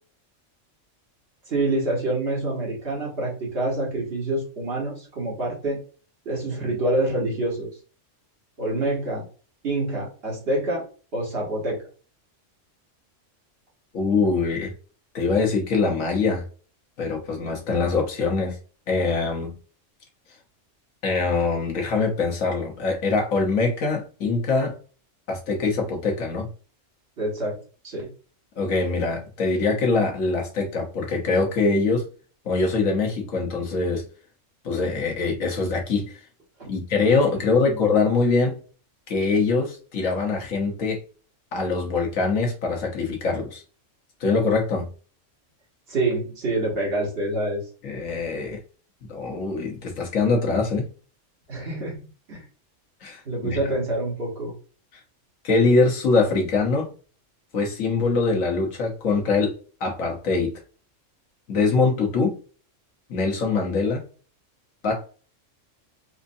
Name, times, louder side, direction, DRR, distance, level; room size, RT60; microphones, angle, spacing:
voice 1, 1.5-5.8 6.2-7.7 8.6-9.3 9.6-10.8 11.1-11.8 27.2-28.1 36.6-36.7 37.4-37.9 45.9-47.6 51.5-51.9 52.3-52.4 53.2-54.5, right 2 dB, 50° right, -3 dB, 1.6 m, -27 dB
voice 2, 13.9-14.7 15.1-16.4 17.0-18.6 18.9-19.5 21.0-24.8 25.3-26.5 28.6-32.1 32.4-34.0 34.6-36.1 36.7-38.6 39.1-41.0 41.5-43.6 44.2-44.9 47.8-48.6 49.1-50.9 53.0-53.6 55.4-56.9 57.5-59.5 59.8-60.5 61.5-62.4 63.1-64.0 64.8-65.0, left 4 dB, 90° left, 1 dB, 1.4 m, -23 dB
4.3 x 2.6 x 2.6 m, 0.38 s
omnidirectional pair, 1.3 m